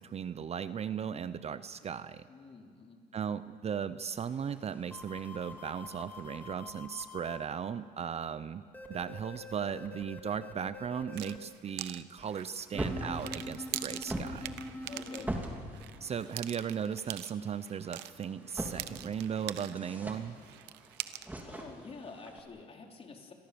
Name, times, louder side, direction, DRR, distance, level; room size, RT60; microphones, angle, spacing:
voice 1, 0.0-2.3 3.1-8.6 8.9-14.6 16.0-20.4, right 7 dB, 40° right, 14 dB, 0.7 m, -37 dB
voice 2, 2.3-3.0 14.8-15.3 21.4-23.3, left 4 dB, 35° left, 1 dB, 3.9 m, -48 dB
sound 1, 4.1-6.5 12.2-22.4, right 1 dB, 10° right, 3.2 m, -44 dB
sound 2, 4.9-7.4 8.7-11.4 12.7-15.4, left 2 dB, 10° left, 2.6 m, -45 dB
sound 3, 11.1-19.9 20.1-21.4, right 15 dB, 90° right, 0.9 m, -43 dB
28.5 x 22.5 x 7.0 m, 2.2 s
cardioid pair, 110°, 17 cm